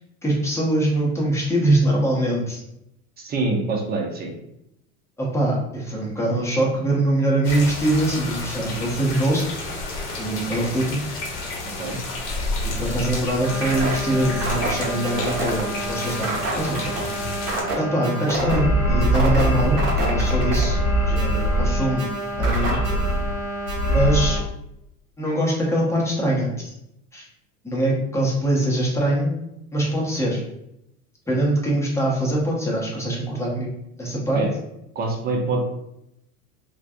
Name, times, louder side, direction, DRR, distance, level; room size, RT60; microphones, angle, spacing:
voice 1, 0.2-2.6 5.2-9.6 10.2-11.0 12.6-16.3 16.6-17.0 17.8-22.1 22.4-22.8 23.9-24.4 25.2-26.7 27.1-27.3 27.6-29.3 29.7-30.4 31.3-33.7 34.0-34.4, right 1 dB, 5° left, -4 dB, 0.9 m, -23 dB
voice 2, 3.2-4.3 11.8-12.0 34.3-34.5 34.9-35.6, right 3 dB, 20° right, 0 dB, 0.7 m, -25 dB
sound 1, 7.4-17.6, left 2 dB, 50° left, 1.0 m, -31 dB
sound 2, 13.4-24.4, right 1 dB, 50° right, 1.2 m, -28 dB
sound 3, 18.4-21.9 22.4-23.4 23.7-24.3, right 1 dB, 85° left, 0.7 m, -22 dB
3.3 x 2.2 x 2.5 m, 0.81 s
hypercardioid pair, 95°, 42 cm